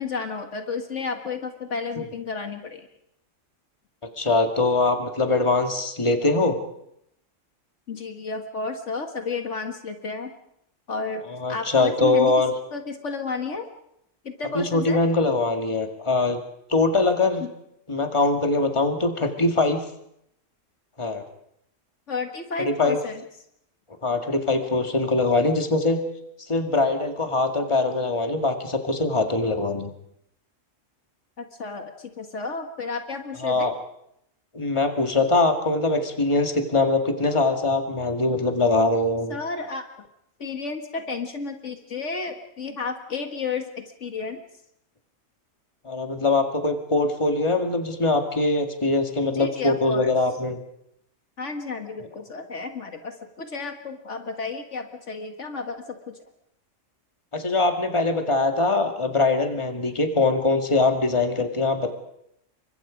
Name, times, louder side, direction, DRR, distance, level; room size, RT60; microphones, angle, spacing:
voice 1, 0.0-2.9 7.9-10.3 10.9-11.2 11.5-12.3 12.7-13.7 14.2-15.0 17.4-17.5 22.1-23.2 31.4-33.7 39.3-40.1 40.4-44.4 49.3-50.1 51.4-56.2, left 4 dB, 65° left, 6 dB, 1.9 m, -32 dB
voice 2, 4.2-6.6 11.3-12.5 14.5-16.4 16.7-17.4 17.9-19.8 21.0-21.2 22.7-23.0 24.0-26.0 26.5-29.9 33.4-33.7 34.5-39.3 45.8-50.6 57.3-61.9, left 2 dB, 25° left, 5 dB, 2.1 m, -22 dB
29.0 x 24.0 x 5.2 m, 0.78 s
omnidirectional pair, 1.3 m